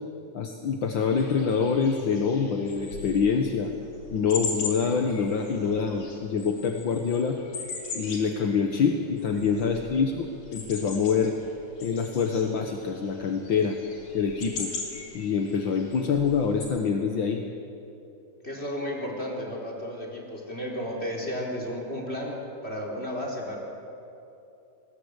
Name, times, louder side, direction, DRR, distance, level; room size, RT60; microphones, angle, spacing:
voice 1, 0.3-3.7 4.1-7.4 7.9-11.3 11.8-13.8 14.1-14.7 15.1-17.4, left 6 dB, 55° left, 4 dB, 1.5 m, -25 dB
sound 1, 1.1-16.6, left 4 dB, 80° left, 5.1 m, -40 dB
voice 2, 9.3-9.7 18.4-23.6, equal, 20° left, 0 dB, 4.1 m, -33 dB
28.5 x 20.5 x 8.2 m, 2.8 s
omnidirectional pair, 3.6 m